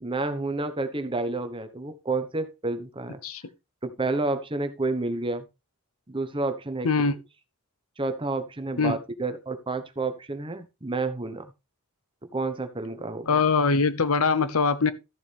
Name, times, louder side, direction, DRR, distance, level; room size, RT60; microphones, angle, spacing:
voice 1, 0.0-3.2 3.8-5.4 6.1-6.9 8.0-11.5 12.3-13.4, right 3 dB, 25° right, 1.1 m, -30 dB
voice 2, 6.8-7.2 8.8-9.0 13.3-14.9, left 4 dB, 75° left, 0.8 m, -22 dB
13.5 x 7.2 x 3.4 m
head